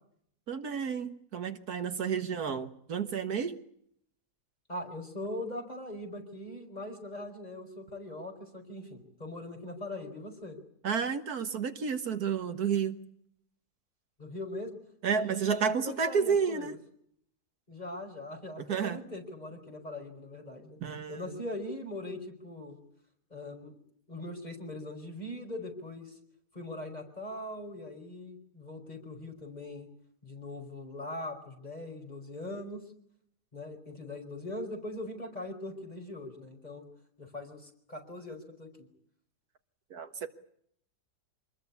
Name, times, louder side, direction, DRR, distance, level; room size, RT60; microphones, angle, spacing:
voice 1, 0.5-3.6 10.8-13.0 15.0-16.7 18.7-19.0 20.8-21.3 39.9-40.3, right 6 dB, 70° right, 8 dB, 1.8 m, -31 dB
voice 2, 4.7-10.6 14.2-14.8 15.1-16.8 17.7-20.8 21.1-22.8 23.3-23.8 24.1-26.2 26.5-29.9 30.2-32.8 33.5-36.8 37.2-38.9, left 1 dB, 25° left, 3 dB, 5.3 m, -41 dB
26.0 x 21.0 x 8.4 m, 0.69 s
omnidirectional pair, 1.7 m